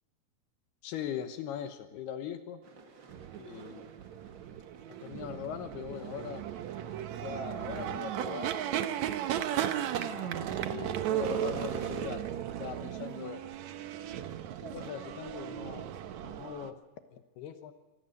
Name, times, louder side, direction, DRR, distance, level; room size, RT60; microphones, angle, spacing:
voice 1, 0.8-2.6 3.4-3.9 5.0-6.4 7.1-8.6 9.8-12.3 12.6-13.4 14.6-15.9 16.2-16.8 17.1-17.7, left 9 dB, 80° left, 8 dB, 3.1 m, -41 dB
sound 1, 2.6-10.1 10.4-12.1, right 5 dB, 55° right, 1.3 m, -52 dB
sound 2, 3.1-16.7, right 11 dB, 80° right, 1.6 m, -36 dB
sound 3, 7.0-13.3, equal, 25° left, 5.6 m, -55 dB
25.5 x 19.0 x 6.7 m, 1.1 s
omnidirectional pair, 4.6 m